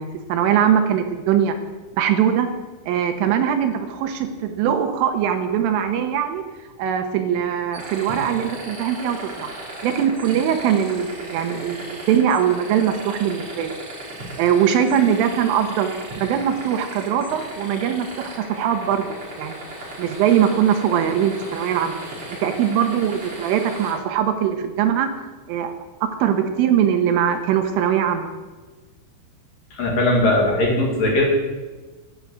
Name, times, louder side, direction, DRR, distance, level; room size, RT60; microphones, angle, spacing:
voice 1, 0.0-1.6 1.9-2.5 2.9-6.4 6.8-9.5 9.8-13.8 14.4-19.1 19.4-19.7 20.0-22.0 22.4-25.1 25.5-25.7 26.0-28.3, right 9 dB, 80° right, 6 dB, 3.4 m, -21 dB
sound 1, 7.7-23.9, right 1 dB, 35° right, 3.8 m, -36 dB
voice 2, 29.7-31.2, left 1 dB, 50° left, -2 dB, 3.4 m, -19 dB
12.0 x 10.5 x 7.6 m, 1.3 s
omnidirectional pair, 6.0 m